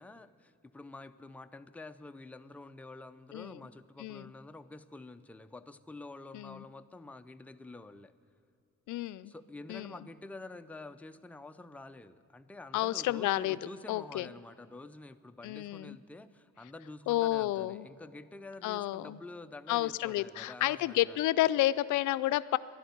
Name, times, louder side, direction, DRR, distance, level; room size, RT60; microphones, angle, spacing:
voice 1, 0.0-8.1 9.3-21.2, left 2 dB, 5° left, 8 dB, 0.5 m, -48 dB
voice 2, 4.0-4.3 6.3-6.6 8.9-9.3 9.7-9.9 12.7-13.6 13.9-14.3 15.4-16.0 17.1-17.9 18.6-19.2 19.7-22.6, left 15 dB, 75° left, 16 dB, 0.5 m, -30 dB
13.0 x 11.5 x 9.4 m, 2.7 s
cardioid pair, 90°, 30 cm